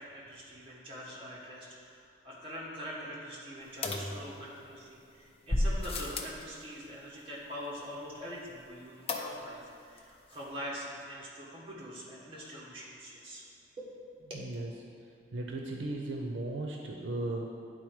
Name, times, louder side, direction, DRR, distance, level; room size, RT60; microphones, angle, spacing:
voice 1, 0.0-13.4 13.8-13.9 14.3-14.5, equal, 30° right, -6 dB, 1.6 m, -44 dB
sound 1, 3.8-4.8 5.5-6.4 9.1-9.7 10.0-10.1 10.3-10.4, left 2 dB, 30° left, 0.5 m, -33 dB
voice 2, 14.3-14.7 15.3-17.5, right 2 dB, 75° right, 1 dB, 0.6 m, -36 dB
10.0 x 3.8 x 4.8 m, 2.4 s
head